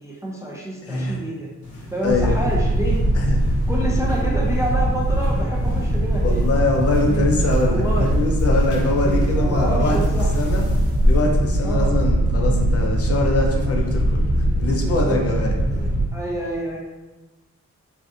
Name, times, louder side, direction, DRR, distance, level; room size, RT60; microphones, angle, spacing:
voice 1, 0.0-1.5 1.9-3.0 3.7-6.5 7.0-7.3 7.7-8.1 9.0-10.3 11.6-12.0 14.8-16.8, right 1 dB, 10° right, -3 dB, 0.3 m, -29 dB
voice 2, 0.9-1.2 2.0-2.4 3.2-3.4 6.2-7.8 8.1-10.0 10.3-10.6 11.0-15.5, left 3 dB, 50° left, 0 dB, 0.5 m, -23 dB
sound 1, 1.6-12.1, equal, 80° left, 0.9 m, -32 dB
sound 2, 2.1-16.1, right 1 dB, 50° right, 0.8 m, -21 dB
3.5 x 2.5 x 2.5 m, 1.1 s
wide cardioid pair, 175°, 30 cm